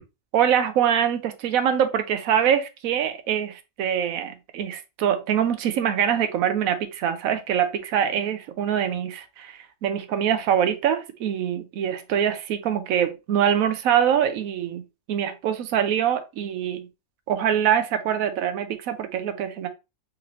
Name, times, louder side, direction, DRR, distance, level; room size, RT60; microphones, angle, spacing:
voice 1, 0.3-14.8 15.1-16.9 17.3-19.7, right 9 dB, 70° right, 0.9 m, -24 dB
3.9 x 2.9 x 2.9 m
omnidirectional pair, 1.6 m